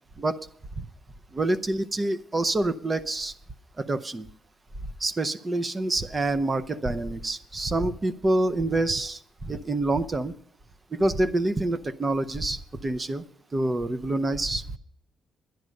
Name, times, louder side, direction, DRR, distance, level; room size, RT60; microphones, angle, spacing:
voice 1, 1.3-3.3 3.8-4.3 5.0-10.3 10.9-13.2 13.5-14.6, right 2 dB, 25° right, 12 dB, 0.7 m, -27 dB
11.0 x 10.5 x 6.4 m, 0.64 s
cardioid pair, 90°, 0 cm